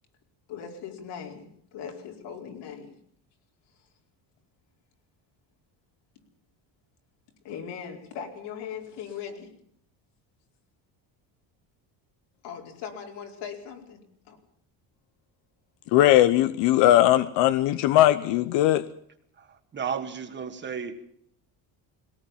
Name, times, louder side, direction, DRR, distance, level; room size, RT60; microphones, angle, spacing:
voice 1, 0.5-2.9 7.4-9.5 12.4-14.4, left 7 dB, 75° left, 4.7 m, -39 dB
voice 2, 15.9-18.8, left 13 dB, 90° left, 1.0 m, -19 dB
voice 3, 19.4-21.0, right 6 dB, 25° right, 1.7 m, -34 dB
21.0 x 18.0 x 7.4 m
cardioid pair, 165°, 42 cm